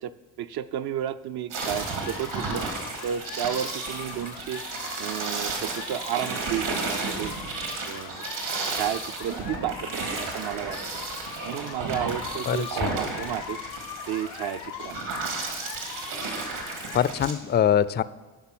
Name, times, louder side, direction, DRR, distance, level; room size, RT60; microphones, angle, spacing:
voice 1, 0.0-2.6 3.0-4.6 5.0-7.3 7.8-8.3 8.7-10.8 11.4-13.6 14.1-15.0, right 10 dB, 60° right, 10 dB, 0.6 m, -32 dB
sound 1, 1.5-17.3, right 3 dB, 75° right, 2.4 m, -33 dB
sound 2, 1.6-17.0, left 11 dB, 70° left, 0.6 m, -41 dB
voice 2, 12.5-13.0 16.7-18.0, left 9 dB, 25° left, 16 dB, 0.3 m, -24 dB
10.0 x 5.5 x 6.1 m, 1.3 s
supercardioid pair, 60°, 45 cm